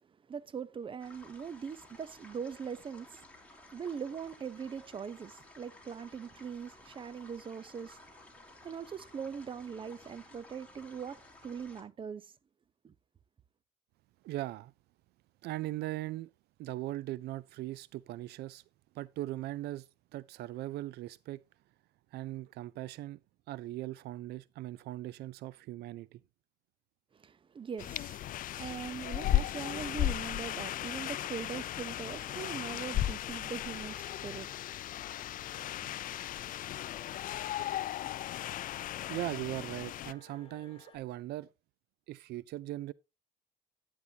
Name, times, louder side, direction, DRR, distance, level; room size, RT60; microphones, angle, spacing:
voice 1, 0.3-8.0 8.3-12.3 12.8-12.9 27.1-36.2, right 6 dB, 30° right, 0.7 m, -42 dB
sound 1, 1.0-11.8, left 2 dB, 10° left, 3.3 m, -56 dB
voice 2, 14.2-14.7 15.4-16.3 16.6-18.6 18.9-21.4 22.1-23.2 23.5-26.2 39.1-41.5 42.1-42.9, right 16 dB, 75° right, 0.4 m, -39 dB
sound 2, 27.8-40.1, left 13 dB, 55° left, 0.4 m, -36 dB
sound 3, 29.1-41.0, left 3 dB, 30° left, 5.2 m, -59 dB
10.5 x 9.6 x 2.8 m
cardioid pair, 110°, 17 cm